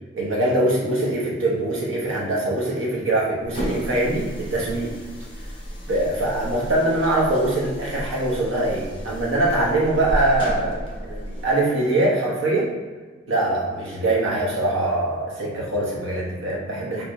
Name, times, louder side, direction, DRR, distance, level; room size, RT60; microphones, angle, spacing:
voice 1, 0.1-5.0 5.9-12.7 13.3-17.0, right 2 dB, 80° right, -3 dB, 1.1 m, -23 dB
sound 1, 3.4-11.5, equal, 25° left, 0.9 m, -33 dB
3.5 x 2.7 x 4.6 m, 1.4 s
head